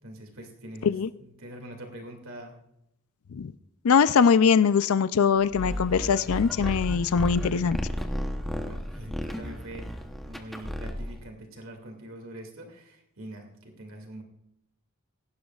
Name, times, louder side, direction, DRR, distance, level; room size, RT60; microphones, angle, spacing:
voice 1, 0.0-0.9 1.2-2.6 8.4-9.9 10.2-14.2, right 1 dB, 65° right, 3 dB, 2.4 m, -44 dB
voice 2, 3.8-7.8, left 6 dB, 75° left, 14 dB, 0.4 m, -22 dB
sound 1, 5.5-11.3, equal, ahead, 0.9 m, -33 dB
18.5 x 16.5 x 2.4 m, 0.80 s
head